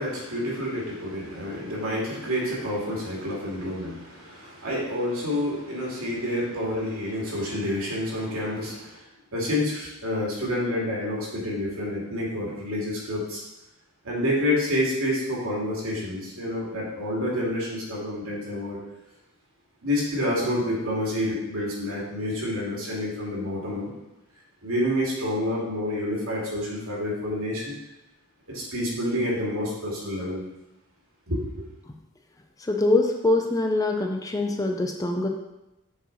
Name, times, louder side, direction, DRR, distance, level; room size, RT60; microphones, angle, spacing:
voice 1, 0.0-9.0 9.3-13.4 14.0-18.8 19.8-23.9 24.6-27.7 28.5-30.4 31.3-31.6, left 1 dB, 80° right, -5 dB, 2.6 m, -28 dB
voice 2, 32.7-35.3, left 2 dB, 15° left, 3 dB, 0.5 m, -23 dB
7.2 x 4.5 x 4.1 m, 0.95 s
head